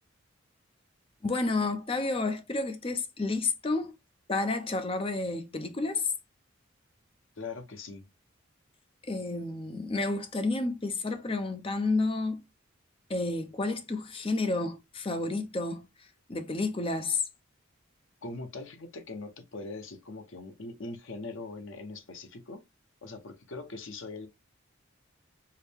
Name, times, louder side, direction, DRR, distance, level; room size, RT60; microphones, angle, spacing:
voice 1, 1.2-4.0 4.3-6.1 9.1-12.4 13.1-15.8 16.3-17.2, left 3 dB, 25° left, 0.6 m, -30 dB
voice 2, 7.4-8.0 18.2-22.6 23.0-24.3, left 3 dB, 65° left, 0.8 m, -41 dB
4.7 x 2.1 x 3.4 m
head